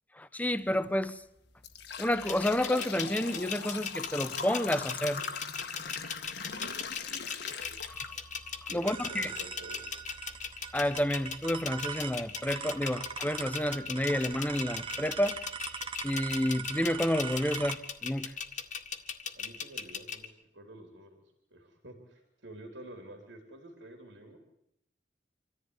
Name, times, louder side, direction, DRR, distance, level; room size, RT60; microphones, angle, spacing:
voice 1, 0.2-1.2 2.0-5.2 7.6-8.2 8.6-9.3 10.7-15.4 16.0-18.3, left 1 dB, 10° left, 1.0 m, -30 dB
sound 1, 0.7-0.9 1.4-8.5 9.0-9.1 9.9-10.0 10.5-10.6 11.1-11.3, left 5 dB, 65° left, 1.7 m, -40 dB
sound 2, 2.3-20.3, left 6 dB, 45° left, 1.9 m, -38 dB
sound 3, 7.6-17.7, right 6 dB, 30° right, 1.3 m, -42 dB
voice 2, 8.7-9.8 19.3-21.2 21.5-24.4, right 1 dB, 85° right, 3.6 m, -49 dB
26.0 x 14.5 x 9.8 m
head